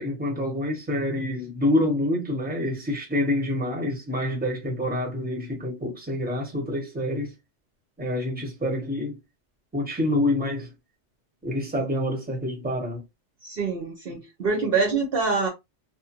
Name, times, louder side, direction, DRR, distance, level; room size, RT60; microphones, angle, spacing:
voice 1, 0.0-7.3 8.0-9.2 9.7-10.7 11.4-13.0, left 1 dB, 10° right, 0.9 m, -27 dB
voice 2, 13.4-15.5, right 4 dB, 60° right, 0.8 m, -25 dB
2.5 x 2.1 x 2.8 m
omnidirectional pair, 1.2 m